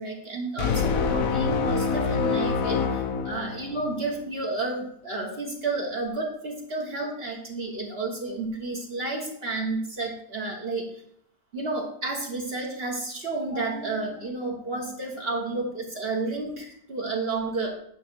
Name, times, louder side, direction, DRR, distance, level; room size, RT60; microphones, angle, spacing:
voice 1, 0.0-10.9 11.5-17.8, right 3 dB, 45° right, -1 dB, 1.5 m, -31 dB
sound 1, 0.6-4.1, left 5 dB, 70° left, 1.2 m, -26 dB
9.3 x 3.6 x 6.2 m, 0.68 s
omnidirectional pair, 1.6 m